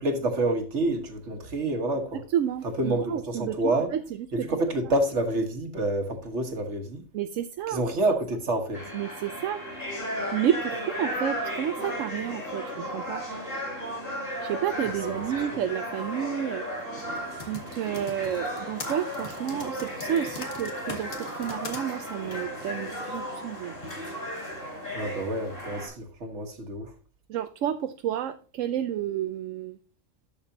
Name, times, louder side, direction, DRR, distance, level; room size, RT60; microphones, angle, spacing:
voice 1, 0.0-2.2 2.8-3.9 4.3-7.0 7.7-8.8 24.9-26.9, right 2 dB, 60° right, 1.8 m, -28 dB
voice 2, 2.1-4.5 7.1-7.8 8.9-9.6 10.3-13.2 14.4-16.6 17.4-23.8 27.3-29.8, right 10 dB, 80° right, 1.0 m, -30 dB
sound 1, 8.7-25.9, equal, 45° left, 5.3 m, -35 dB
Typing, 17.2-21.8 22.3-22.4, left 4 dB, 80° left, 2.1 m, -40 dB
12.0 x 7.1 x 2.8 m
omnidirectional pair, 1.3 m